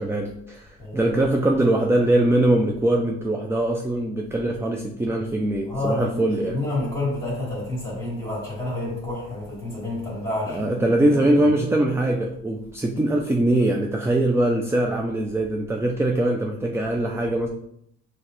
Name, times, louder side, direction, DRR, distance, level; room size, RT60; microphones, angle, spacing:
voice 1, 0.0-6.6 10.5-17.5, right 1 dB, 10° right, 2 dB, 0.4 m, -22 dB
voice 2, 0.8-1.2 5.7-10.7 11.0-11.5 17.0-17.2, left 2 dB, 15° left, -7 dB, 1.7 m, -29 dB
4.6 x 3.1 x 3.1 m, 0.74 s
cardioid pair, 90°, 30 cm